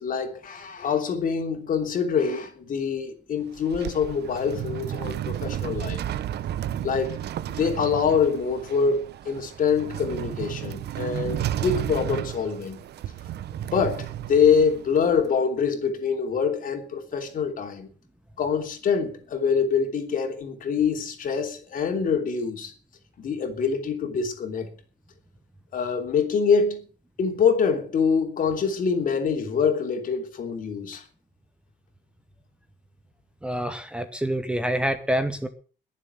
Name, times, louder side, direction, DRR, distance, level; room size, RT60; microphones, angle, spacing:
voice 1, 0.0-6.0 6.8-7.2 7.6-12.8 13.7-17.9 18.4-22.7 23.2-24.7 25.7-26.8 27.2-31.0, left 6 dB, 45° left, 3.2 m, -25 dB
sound 1, 3.4-15.3, right 11 dB, 60° right, 0.9 m, -33 dB
voice 2, 33.4-35.5, right 1 dB, 5° right, 1.0 m, -27 dB
21.0 x 7.4 x 8.0 m
cardioid pair, 165°, 19 cm